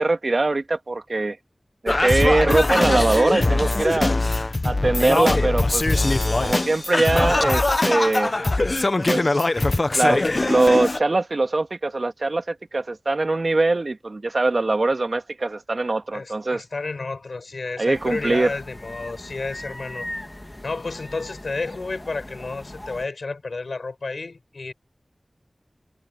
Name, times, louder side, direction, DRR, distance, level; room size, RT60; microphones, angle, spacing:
voice 1, 0.0-1.4 1.8-4.1 4.6-5.9 6.4-8.3 9.1-9.5 9.9-16.6 17.8-18.5, right 2 dB, 65° right, 2.0 m, -22 dB
Singing, 1.9-11.0, left 2 dB, 50° left, 0.9 m, -21 dB
voice 2, 3.9-4.2 16.1-20.1 20.6-24.7, left 3 dB, 85° left, 6.9 m, -31 dB
sound 1, 17.9-23.1, left 1 dB, 25° left, 2.9 m, -39 dB
wide cardioid pair, 55°, 0 cm